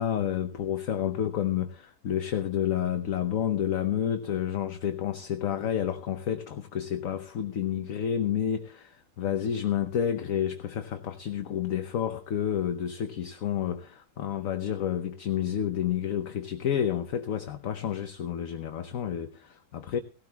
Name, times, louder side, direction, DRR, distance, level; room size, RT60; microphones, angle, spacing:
voice 1, 0.0-20.0, left 9 dB, 60° left, 1.2 m, -30 dB
18.0 x 17.0 x 2.3 m
omnidirectional pair, 1.7 m